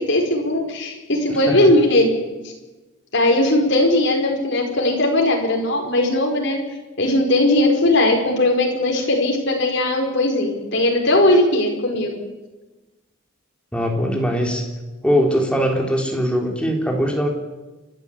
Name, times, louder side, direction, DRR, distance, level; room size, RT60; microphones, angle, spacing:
voice 1, 0.0-2.1 3.1-6.6 7.0-12.1, left 1 dB, 55° left, 1 dB, 5.0 m, -18 dB
voice 2, 13.7-14.6 15.0-17.3, equal, 5° left, 1 dB, 3.4 m, -21 dB
29.0 x 12.5 x 8.4 m, 1.2 s
head